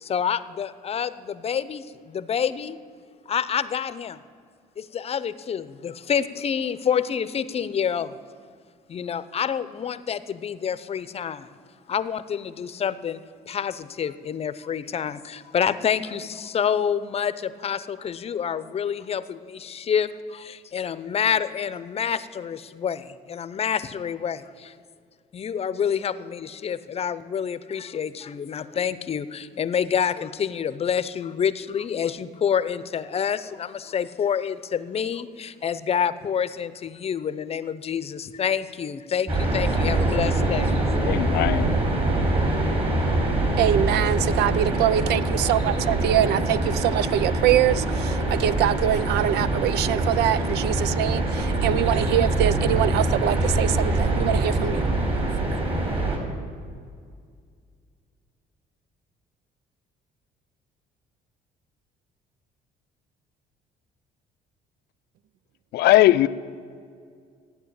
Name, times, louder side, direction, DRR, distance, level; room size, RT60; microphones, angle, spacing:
voice 1, 0.0-2.8 3.3-4.2 4.8-8.2 8.9-11.5 11.9-13.2 13.5-24.7 25.3-40.7, left 8 dB, 35° left, 15 dB, 0.7 m, -28 dB
sound 1, 39.3-56.2, right 2 dB, 35° right, 3.5 m, -24 dB
voice 2, 41.0-41.7 65.7-66.3, left 15 dB, 75° left, 14 dB, 0.5 m, -19 dB
voice 3, 43.6-54.8, right 12 dB, 75° right, 18 dB, 0.5 m, -24 dB
14.5 x 9.7 x 8.6 m, 2.1 s
cardioid pair, 110°, 17 cm